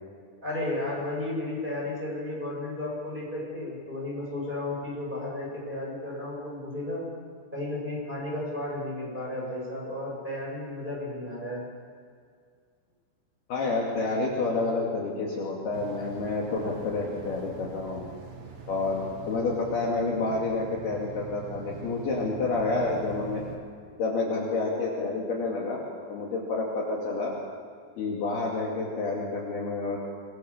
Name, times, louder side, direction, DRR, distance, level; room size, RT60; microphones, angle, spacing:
voice 1, 0.4-7.0 7.5-11.7, left 1 dB, 10° right, -4 dB, 7.1 m, -33 dB
voice 2, 13.5-18.1 18.7-23.4 24.0-25.8 26.1-27.3 28.0-30.0, left 3 dB, 55° left, -3 dB, 4.0 m, -29 dB
sound 1, 15.7-23.6, right 5 dB, 50° right, 2.3 m, -44 dB
26.0 x 21.5 x 7.3 m, 2.1 s
omnidirectional pair, 6.0 m